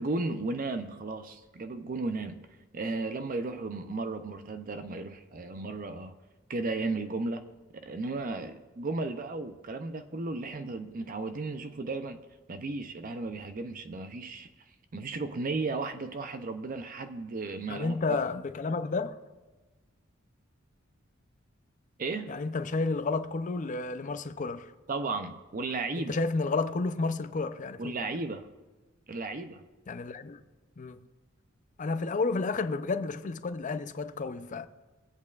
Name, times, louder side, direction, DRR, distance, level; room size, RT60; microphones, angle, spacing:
voice 1, 0.0-2.5 2.7-6.2 6.5-7.4 7.7-12.2 12.5-14.5 14.9-18.2 22.0-22.3 24.9-26.2 27.8-28.5 29.1-29.6, right 3 dB, 45° right, 0.5 m, -34 dB
voice 2, 17.7-19.2 22.3-24.7 25.9-27.9 29.9-30.4 30.8-31.0 31.8-34.7, left 3 dB, 40° left, 0.5 m, -31 dB
24.0 x 8.4 x 2.4 m
head